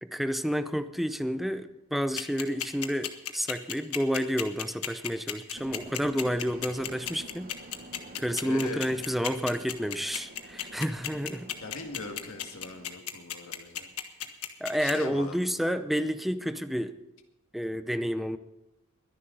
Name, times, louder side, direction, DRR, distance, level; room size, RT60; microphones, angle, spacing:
voice 1, 0.0-7.5 8.2-11.5 14.6-17.0 17.5-18.4, equal, ahead, 0.6 m, -30 dB
sound 1, 2.2-14.9, left 11 dB, 80° left, 1.3 m, -33 dB
sound 2, 5.5-12.9, right 2 dB, 45° right, 1.1 m, -48 dB
voice 2, 8.4-8.8 11.6-13.9 14.8-15.4, left 3 dB, 65° left, 2.0 m, -40 dB
22.5 x 10.5 x 4.0 m
head